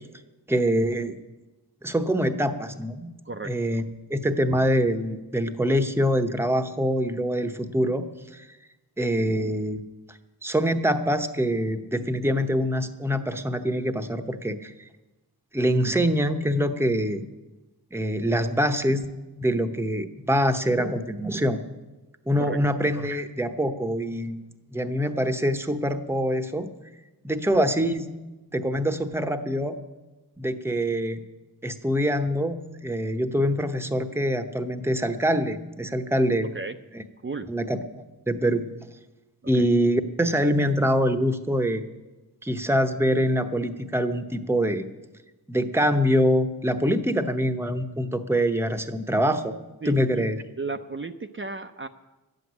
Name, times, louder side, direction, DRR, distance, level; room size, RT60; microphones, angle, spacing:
voice 1, 0.5-1.2 1.8-3.1 3.4-3.8 4.1-8.1 8.3-8.5 9.0-9.8 10.4-14.7 15.5-17.2 17.9-19.1 19.4-21.6 22.3-24.4 24.7-26.7 27.2-28.1 28.5-29.8 30.4-31.2 31.6-36.5 36.9-37.0 37.5-37.8 38.3-38.6 39.5-41.8 42.4-44.9 45.5-49.5 49.9-50.4, equal, 5° right, 8 dB, 0.9 m, -24 dB
voice 2, 3.2-3.8 22.4-22.6 36.5-36.8 37.2-37.5 39.6-39.7 49.8-49.9 50.6-51.9, right 3 dB, 30° right, 6 dB, 0.6 m, -34 dB
12.0 x 8.0 x 9.5 m, 1.1 s
wide cardioid pair, 75°, 39 cm